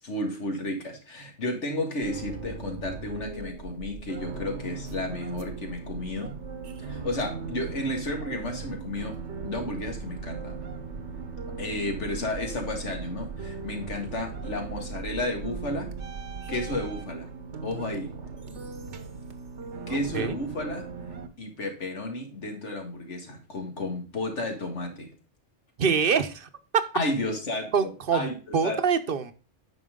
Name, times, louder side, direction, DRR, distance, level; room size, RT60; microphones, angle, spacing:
voice 1, 0.0-6.4 6.8-10.6 11.6-15.9 16.5-17.3 17.6-18.1 19.9-20.9 21.4-25.1 26.9-28.8, left 1 dB, 90° left, 3 dB, 2.2 m, -32 dB
sound 1, 2.0-21.3, right 4 dB, 85° right, 1.3 m, -38 dB
voice 2, 19.9-20.3 25.8-26.8 27.7-29.3, right 6 dB, 55° right, 10 dB, 0.9 m, -25 dB
9.3 x 5.8 x 3.7 m, 0.35 s
omnidirectional pair, 1.2 m